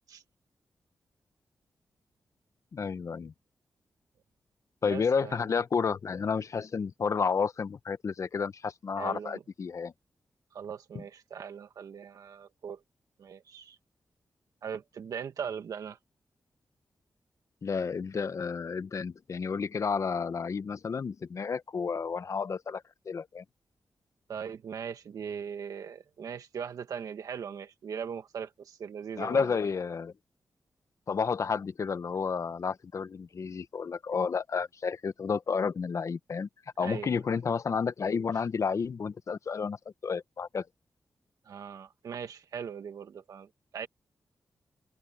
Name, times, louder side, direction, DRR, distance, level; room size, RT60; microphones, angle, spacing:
voice 1, 2.7-3.3 4.8-9.9 10.9-11.0 17.6-23.4 29.2-30.1 31.1-36.5 36.8-39.8 40.0-40.7, left 5 dB, 60° left, 1.0 m, -31 dB
voice 2, 4.8-5.4 9.0-9.4 10.5-12.8 13.2-13.8 14.6-16.0 24.3-29.6 36.8-37.2 41.5-43.5 43.7-43.9, right 7 dB, 80° right, 1.7 m, -39 dB
cardioid pair, 70°, 6 cm